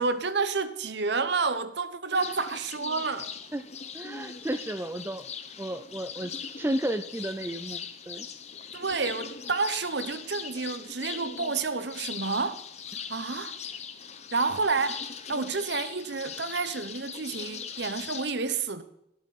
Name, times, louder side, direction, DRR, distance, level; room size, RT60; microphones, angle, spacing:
voice 1, 0.0-3.3 8.7-12.6 13.1-13.6 14.3-15.0 15.3-18.8, right 4 dB, 60° right, 0.9 m, -29 dB
sound 1, 2.1-18.3, left 6 dB, 35° left, 0.8 m, -40 dB
voice 2, 3.9-5.3 5.6-8.3, right 1 dB, 10° right, 0.4 m, -33 dB
18.0 x 8.3 x 4.2 m
head